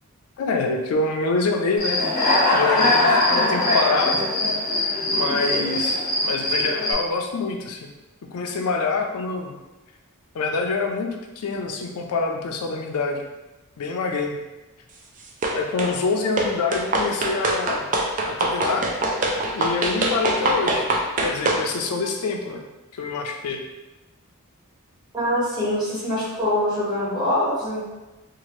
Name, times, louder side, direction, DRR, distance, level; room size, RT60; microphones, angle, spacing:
voice 1, 0.4-2.0 2.5-4.2 5.1-7.9 8.3-9.6 10.3-13.2 13.8-14.4 15.5-17.9 18.3-18.9 19.5-20.9 21.2-22.6 23.0-23.6, left 3 dB, 90° left, 2 dB, 0.4 m, -26 dB
Human voice / Cricket, 1.8-6.9, left 2 dB, 40° left, 0.7 m, -21 dB
sound 1, 15.4-15.9 16.4-21.7, right 2 dB, 35° right, 0.3 m, -24 dB
voice 2, 25.1-27.8, left 1 dB, 20° right, -10 dB, 1.3 m, -24 dB
2.8 x 2.4 x 3.0 m, 1.1 s
head